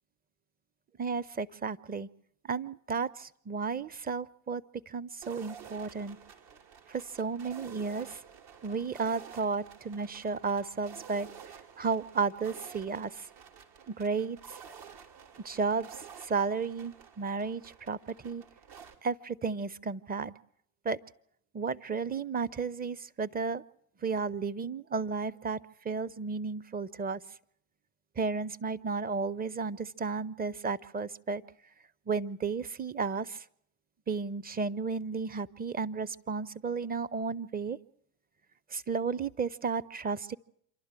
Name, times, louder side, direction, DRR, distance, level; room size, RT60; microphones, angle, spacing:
voice 1, 1.0-2.1 2.5-6.2 6.9-8.2 8.6-11.3 11.8-13.3 13.9-14.6 15.4-18.4 19.0-20.3 20.8-21.0 21.5-23.6 24.0-25.6 25.8-27.2 28.2-31.4 32.1-33.4 34.1-37.8 38.7-40.4, right 5 dB, 20° right, 17 dB, 0.8 m, -33 dB
sound 1, 5.2-18.9, right 7 dB, 60° right, 3.4 m, -51 dB
27.0 x 12.0 x 9.0 m, 0.70 s
hypercardioid pair, 85°, 42 cm